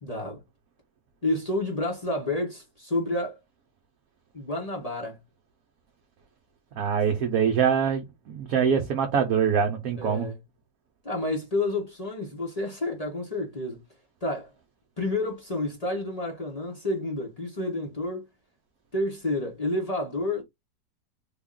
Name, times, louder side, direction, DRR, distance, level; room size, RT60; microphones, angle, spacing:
voice 1, 0.0-0.4 1.2-3.4 4.3-5.2 10.0-10.4 11.0-13.8 14.2-14.5 15.0-18.3 18.9-20.4, left 2 dB, 30° left, 0.8 m, -30 dB
voice 2, 6.8-10.3, right 7 dB, 65° right, 1.1 m, -24 dB
3.5 x 2.4 x 3.6 m
omnidirectional pair, 1.8 m